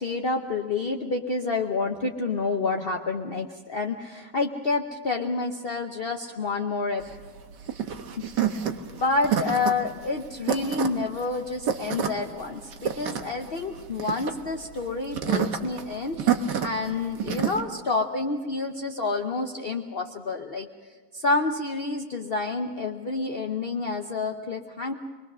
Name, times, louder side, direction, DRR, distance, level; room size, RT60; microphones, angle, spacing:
voice 1, 0.0-7.0 8.2-8.3 8.8-16.2 16.6-24.9, left 3 dB, 40° left, 2 dB, 1.0 m, -29 dB
sound 1, 7.0-17.6, right 8 dB, 85° right, 1.9 m, -29 dB
26.5 x 21.0 x 6.2 m, 1.4 s
omnidirectional pair, 1.8 m